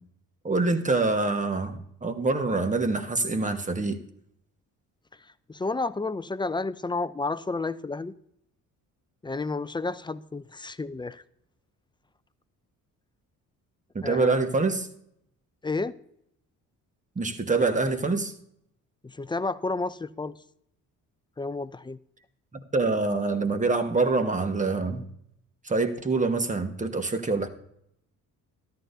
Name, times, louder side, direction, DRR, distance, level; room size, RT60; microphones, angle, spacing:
voice 1, 0.4-4.0 13.9-14.9 17.1-18.3 22.7-25.1 25.6-27.5, right 3 dB, 20° right, 1.3 m, -25 dB
voice 2, 5.5-8.1 9.2-11.2 14.0-14.4 15.6-16.0 19.0-20.3 21.4-22.0, left 3 dB, 15° left, 0.4 m, -31 dB
13.5 x 11.5 x 2.7 m
cardioid pair, 80°, 34 cm